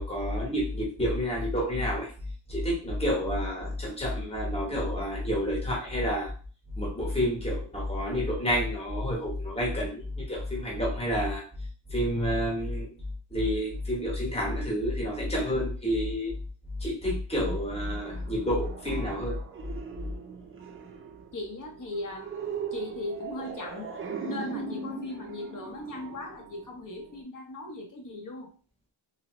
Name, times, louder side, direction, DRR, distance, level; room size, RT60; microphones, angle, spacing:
voice 1, 0.0-2.1 2.5-6.3 6.8-11.4 11.9-12.9 13.3-16.3 16.8-19.4, equal, 10° left, -4 dB, 1.1 m, -29 dB
sound 1, 17.6-27.2, right 5 dB, 30° right, 0.5 m, -40 dB
voice 2, 21.3-22.3 22.7-23.9 24.3-28.5, left 2 dB, 40° left, 1 dB, 0.9 m, -38 dB
2.8 x 2.7 x 3.0 m, 0.40 s
wide cardioid pair, 135°, 48 cm